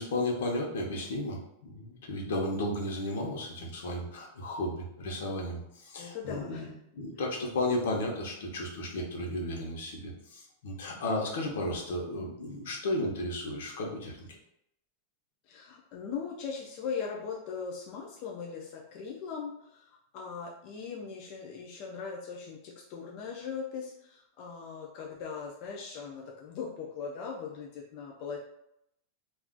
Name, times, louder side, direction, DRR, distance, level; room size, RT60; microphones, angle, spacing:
voice 1, 0.0-6.7 7.0-14.3, left 1 dB, 70° left, -1 dB, 0.8 m, -34 dB
voice 2, 6.0-6.7 15.5-28.4, left 6 dB, 35° left, -2 dB, 0.3 m, -39 dB
2.3 x 2.3 x 3.7 m, 0.79 s
supercardioid pair, 180°, 0 cm